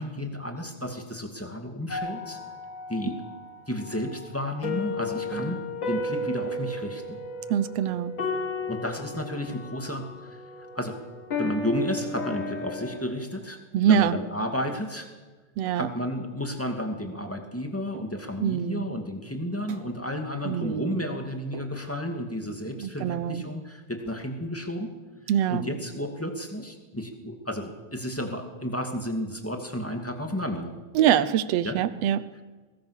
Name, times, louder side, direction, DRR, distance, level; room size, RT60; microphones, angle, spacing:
voice 1, 0.0-2.4 2.9-3.2 3.7-5.6 5.9-7.2 8.7-10.4 10.7-11.0 11.4-13.6 13.8-15.1 15.8-24.9 25.5-30.7 31.6-31.8, left 1 dB, 5° left, 4 dB, 1.8 m, -32 dB
sound 1, 1.9-13.0, left 2 dB, 40° left, 3.1 m, -34 dB
voice 2, 7.5-8.2 13.7-14.2 15.6-15.9 18.4-18.9 20.4-21.0 22.8-23.5 25.3-25.7 30.9-32.4, right 10 dB, 70° right, 15 dB, 1.7 m, -24 dB
sound 2, 17.9-18.5 19.7-20.1 21.5-22.2, right 6 dB, 50° right, 1.8 m, -45 dB
23.5 x 19.5 x 6.5 m, 1.3 s
omnidirectional pair, 3.3 m